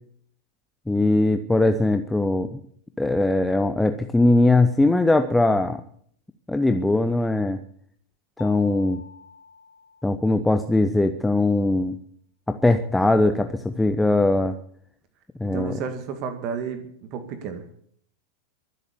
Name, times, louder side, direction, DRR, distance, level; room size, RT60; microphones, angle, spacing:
voice 1, 0.9-2.6 3.0-5.8 6.5-7.6 8.4-9.0 10.0-12.0 12.5-14.6 15.4-15.8, left 2 dB, 5° left, 8 dB, 0.9 m, -20 dB
Mallet percussion, 8.4-10.9, left 5 dB, 55° left, 4.3 m, -48 dB
voice 2, 15.4-17.7, right 6 dB, 40° right, 8 dB, 2.1 m, -32 dB
23.5 x 8.3 x 7.0 m, 0.63 s
figure-of-eight pair, 90°, 0 cm